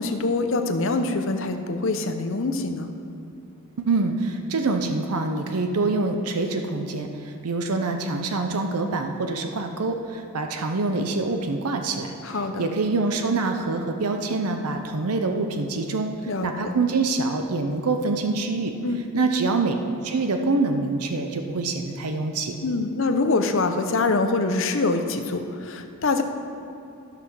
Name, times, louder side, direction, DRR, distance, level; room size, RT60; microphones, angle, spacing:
voice 1, 0.0-2.9 12.2-12.7 16.3-16.5 18.8-19.0 22.6-26.2, left 3 dB, 60° left, 7 dB, 0.8 m, -24 dB
voice 2, 3.8-7.1 7.4-12.1 12.6-16.1 16.4-18.7 19.1-19.7 20.0-22.5, right 3 dB, 85° right, 5 dB, 0.7 m, -25 dB
14.0 x 6.0 x 6.2 m, 2.7 s
head